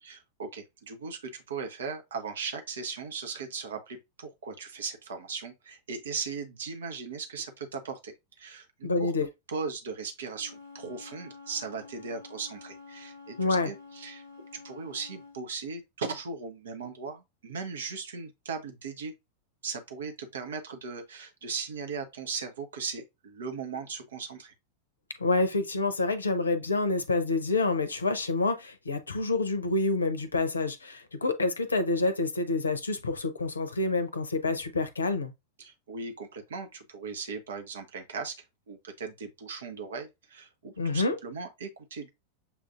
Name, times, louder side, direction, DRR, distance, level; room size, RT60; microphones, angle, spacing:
voice 1, 0.0-9.1 9.5-14.2 14.5-19.1 19.6-24.5 35.6-42.1, right 5 dB, 65° right, 0.8 m, -38 dB
voice 2, 8.8-9.3 13.4-13.7 25.2-35.3 40.8-41.2, left 3 dB, 75° left, 0.6 m, -27 dB
Wind instrument woodwind instrument, 10.3-15.4, left 4 dB, 85° right, 2.0 m, -49 dB
7.0 x 2.5 x 2.4 m
figure-of-eight pair, 90°, 0 cm